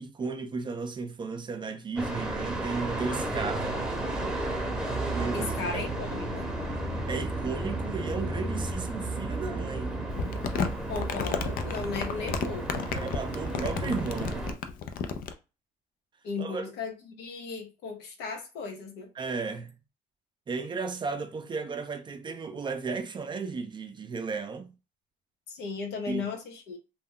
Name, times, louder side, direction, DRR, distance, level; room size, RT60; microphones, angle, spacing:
voice 1, 0.0-3.7 5.1-5.9 7.1-10.0 12.9-14.5 16.4-16.7 19.2-19.8 20.5-24.7 26.1-26.3, right 4 dB, 30° right, 0.4 m, -34 dB
sound 1, 2.0-14.5, right 2 dB, 5° right, 0.8 m, -33 dB
voice 2, 5.3-6.4 10.9-12.9 16.2-19.1 25.5-26.8, left 4 dB, 85° left, 0.9 m, -36 dB
Crumpling crinkling, 10.1-15.3, left 6 dB, 60° left, 0.4 m, -33 dB
2.3 x 2.1 x 3.6 m
cardioid pair, 110°, 17 cm